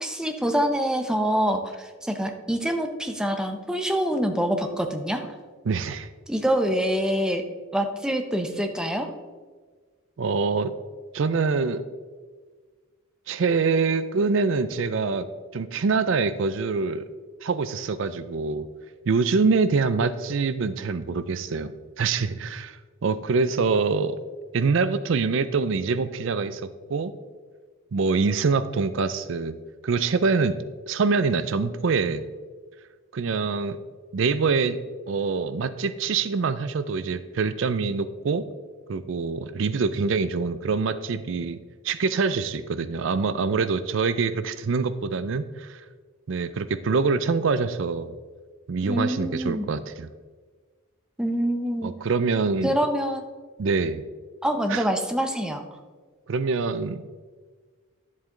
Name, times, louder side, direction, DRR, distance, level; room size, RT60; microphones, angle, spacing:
voice 1, 0.0-5.3 6.3-7.4 7.7-9.1 48.9-49.7 51.2-51.9 52.6-53.2 54.4-55.6, equal, 5° right, 5 dB, 0.7 m, -25 dB
voice 2, 5.7-6.1 10.2-10.7 11.1-11.8 13.3-15.3 15.5-17.1 17.4-18.7 19.1-24.2 24.5-27.1 27.9-29.5 29.8-30.6 30.9-32.2 33.1-33.8 34.1-34.8 35.1-38.4 38.9-45.8 46.3-48.2 48.7-50.1 51.8-52.7 53.6-54.0 54.7-54.9 56.3-57.0, right 4 dB, 60° right, 13 dB, 0.4 m, -25 dB
10.5 x 7.4 x 3.8 m, 1.5 s
head